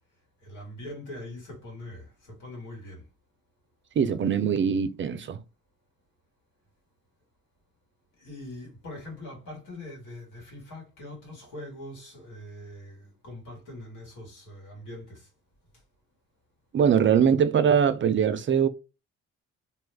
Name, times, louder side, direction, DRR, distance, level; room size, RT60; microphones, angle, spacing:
voice 1, 0.4-3.0 8.2-15.3, left 1 dB, 90° left, 1.8 m, -42 dB
voice 2, 4.0-5.4 16.7-18.7, right 7 dB, 40° right, 0.4 m, -22 dB
2.9 x 2.3 x 3.3 m
cardioid pair, 90°, 30 cm